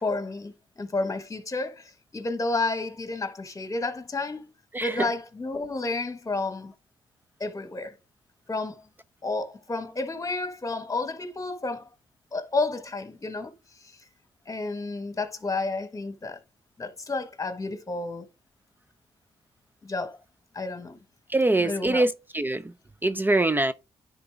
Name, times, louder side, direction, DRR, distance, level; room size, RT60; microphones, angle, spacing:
voice 1, 0.0-4.5 4.8-6.7 7.4-7.9 8.5-8.8 9.2-11.9 12.3-13.5 13.8-14.0 14.5-16.4 16.8-18.3 19.8-20.2 20.5-21.0 21.6-22.0, left 3 dB, 30° left, 1.4 m, -31 dB
voice 2, 4.7-5.1 21.3-22.7 23.0-23.7, right 2 dB, 20° right, 0.5 m, -24 dB
9.9 x 4.0 x 3.5 m
supercardioid pair, 60°, 11 cm